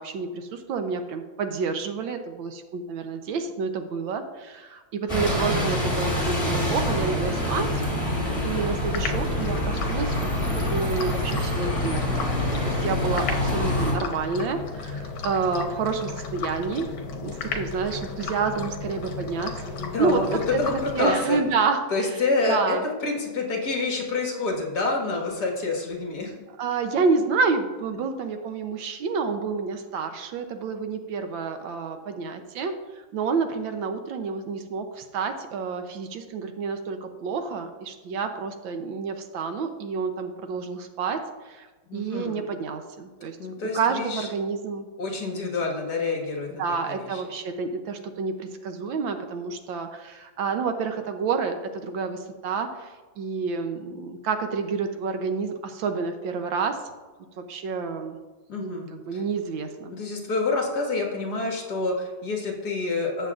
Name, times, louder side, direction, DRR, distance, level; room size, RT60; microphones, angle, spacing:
voice 1, 0.0-7.7 8.4-12.3 12.6-16.9 17.2-19.5 20.0-20.2 20.5-20.6 20.9-21.8 22.1-22.2 22.5-22.8 26.6-32.7 33.1-41.7 41.9-43.4 43.7-44.9 46.6-56.8 57.4-58.2 58.6-59.9, right 5 dB, 75° right, 7 dB, 1.5 m, -29 dB
Bus, 5.1-13.9, left 1 dB, 15° left, 3.1 m, -26 dB
sound 1, 8.9-21.6, left 4 dB, 75° left, 1.8 m, -34 dB
voice 2, 19.7-21.4 21.9-26.3 41.9-42.4 43.4-44.3 45.0-46.5 46.9-47.2 58.5-59.2 59.9-63.3, left 3 dB, 55° left, -1 dB, 2.2 m, -27 dB
13.5 x 8.1 x 2.5 m, 1.3 s
omnidirectional pair, 2.2 m